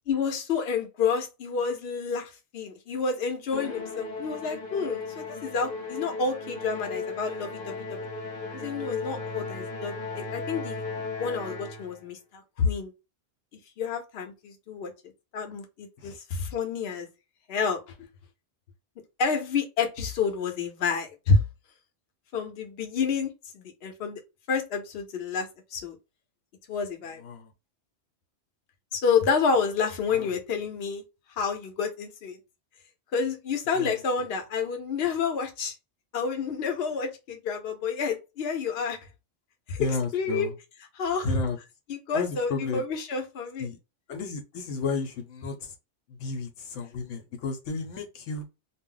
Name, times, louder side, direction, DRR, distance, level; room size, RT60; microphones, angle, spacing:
voice 1, 0.1-8.0 8.5-12.9 13.8-14.9 15.3-17.1 17.5-17.8 19.2-21.4 22.3-24.2 24.5-26.0 26.7-27.2 28.9-31.0 31.4-32.4 33.1-35.7 36.1-39.0 39.7-40.5 40.9-41.4 41.9-43.7, left 5 dB, 60° left, 0.9 m, -29 dB
Musical instrument, 3.5-12.0, left 3 dB, 20° left, 0.8 m, -36 dB
voice 2, 27.2-27.5 33.7-34.3 39.8-40.5 41.2-41.6 42.1-42.8 43.6-43.8 44.1-45.7 46.1-48.4, left 4 dB, 90° left, 1.0 m, -33 dB
2.3 x 2.0 x 3.7 m
omnidirectional pair, 1.2 m